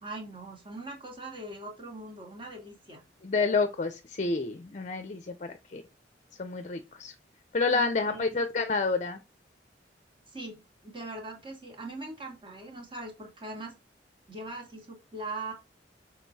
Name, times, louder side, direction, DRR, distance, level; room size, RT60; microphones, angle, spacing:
voice 1, 0.0-3.0 7.7-8.3 10.3-13.7 14.3-15.5, right 2 dB, 30° right, 1 dB, 2.1 m, -41 dB
voice 2, 3.2-5.8 6.4-7.1 7.5-9.2, left 4 dB, 40° left, 9 dB, 0.5 m, -29 dB
6.5 x 3.9 x 4.0 m, 0.28 s
head